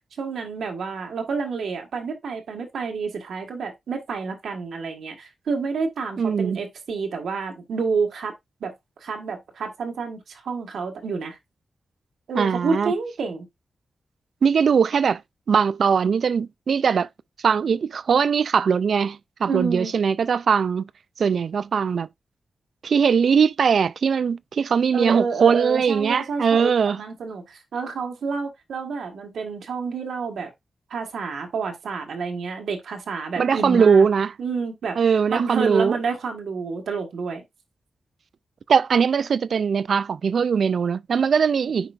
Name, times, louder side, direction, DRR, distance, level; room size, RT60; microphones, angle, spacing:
voice 1, 0.2-8.3 8.6-8.7 9.0-11.4 12.3-13.5 19.5-19.9 24.9-26.7 26.9-30.5 30.9-34.1 34.4-35.0 35.3-37.4, right 5 dB, 85° right, 1.5 m, -29 dB
voice 2, 6.2-6.6 12.4-12.9 14.4-15.2 15.5-17.1 17.4-20.9 21.2-22.1 22.8-27.0 33.4-34.3 35.0-36.0 38.7-41.9, right 6 dB, 70° right, 0.3 m, -20 dB
9.8 x 4.6 x 2.5 m
wide cardioid pair, 105°, 0 cm